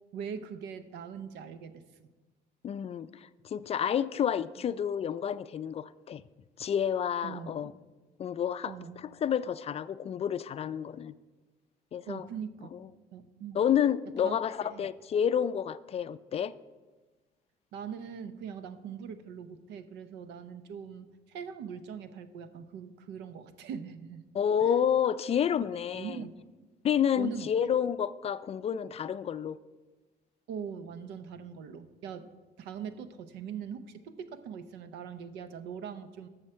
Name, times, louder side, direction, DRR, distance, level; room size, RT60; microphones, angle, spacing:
voice 1, 0.1-1.8 7.2-7.6 8.7-9.0 12.1-12.7 13.1-13.6 14.2-14.4 14.7-14.9 17.7-24.2 24.6-24.7 25.9-26.5 27.2-27.5 30.5-32.3 32.6-36.3, right 7 dB, 85° right, 11 dB, 0.7 m, -41 dB
voice 2, 2.6-6.2 6.6-7.7 8.2-11.1 11.9-12.3 12.7-12.8 13.5-16.5 24.3-26.2 26.8-29.6, left 8 dB, 35° left, 14 dB, 0.4 m, -29 dB
13.0 x 6.4 x 4.5 m, 1.2 s
cardioid pair, 110°, 17 cm